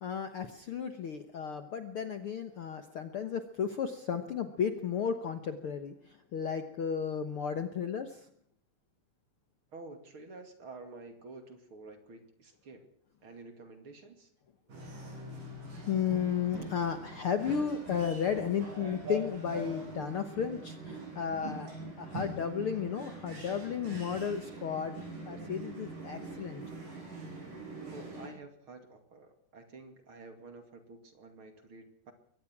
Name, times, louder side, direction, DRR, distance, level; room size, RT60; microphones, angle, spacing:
voice 1, 0.0-8.3 15.9-21.7 22.0-24.9 25.3-26.7, left 7 dB, 55° left, 8 dB, 1.6 m, -34 dB
voice 2, 9.7-12.9 13.2-14.3 27.9-32.1, right 3 dB, 45° right, 7 dB, 3.0 m, -50 dB
sound 1, 14.7-28.3, right 2 dB, 80° right, 8.4 m, -43 dB
23.0 x 19.0 x 6.1 m, 0.66 s
omnidirectional pair, 3.8 m